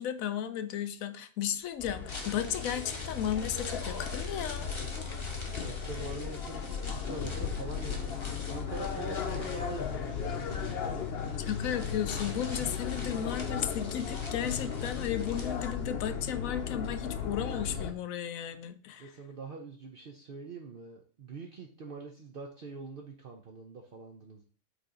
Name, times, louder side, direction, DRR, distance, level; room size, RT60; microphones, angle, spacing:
voice 1, 0.0-4.7 11.5-19.1, left 9 dB, 85° left, 11 dB, 1.0 m, -34 dB
sound 1, 1.8-17.9, left 6 dB, 55° left, 0.9 m, -36 dB
sound 2, 2.0-16.1 16.4-16.5, left 2 dB, 25° left, 0.8 m, -46 dB
voice 2, 5.6-8.2 8.5-11.1 19.0-24.4, right 4 dB, 50° right, 1 dB, 0.8 m, -44 dB
8.2 x 3.3 x 3.8 m, 0.42 s
omnidirectional pair, 1.4 m